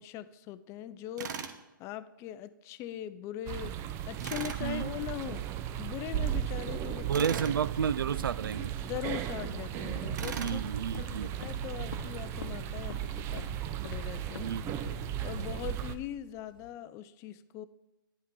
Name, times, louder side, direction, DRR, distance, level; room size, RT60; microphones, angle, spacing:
voice 1, 0.0-1.4 1.8-3.8 4.1-5.4 5.8-7.3 8.9-10.6 11.0-14.5 15.2-17.7, left 12 dB, 25° left, 0.5 m, -41 dB
Tools, 1.2-1.6 4.2-4.6 7.1-7.6 10.2-10.6, right 6 dB, 55° right, 1.1 m, -38 dB
sound 1, 3.5-16.0, right 11 dB, 25° right, 0.5 m, -36 dB
voice 2, 7.1-8.7 10.4-11.3 14.4-14.7, right 7 dB, 80° right, 0.4 m, -31 dB
Walk footsteps, 8.8-16.7, left 5 dB, 80° left, 0.8 m, -46 dB
11.0 x 10.0 x 3.8 m
hypercardioid pair, 135°, 11 cm